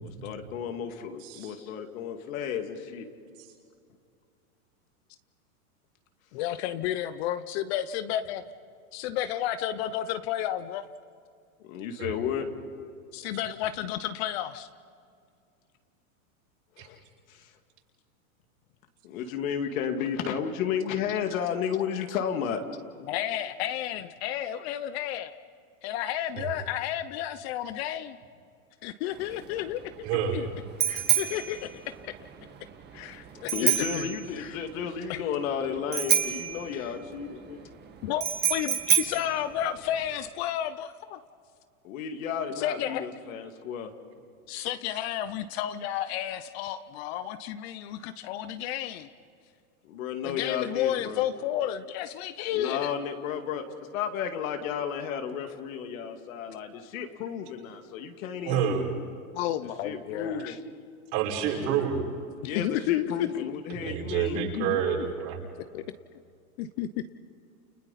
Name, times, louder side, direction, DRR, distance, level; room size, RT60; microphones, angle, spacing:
voice 1, 0.0-3.1 11.7-12.5 16.8-17.0 17.3-17.5 19.0-22.6 33.5-37.7 41.8-43.9 49.8-51.2 52.5-53.6 53.9-58.8 59.8-60.5 62.4-64.4, left 7 dB, 65° left, 5 dB, 2.5 m, -33 dB
voice 2, 6.3-8.4 8.9-10.8 13.1-14.7 23.0-25.3 25.8-28.2 28.8-29.8 30.3-30.5 30.9-31.7 32.1-32.2 32.9-34.1 34.4-34.6 35.1-35.2 36.7-36.9 38.0-38.2 38.5-41.2 42.6-43.0 44.5-49.1 50.2-52.9 59.3-60.6 62.4-63.5 64.3-64.9 65.7-65.8 66.6-67.1, left 11 dB, 45° left, 12 dB, 0.8 m, -32 dB
Bicycle bell, 29.1-40.3, right 10 dB, 20° right, 1.8 m, -30 dB
voice 3, 30.0-30.4 58.4-58.8 61.1-62.0 63.8-65.4, right 8 dB, 50° right, -2 dB, 5.8 m, -28 dB
29.5 x 29.5 x 4.3 m, 2.3 s
hypercardioid pair, 135°, 44 cm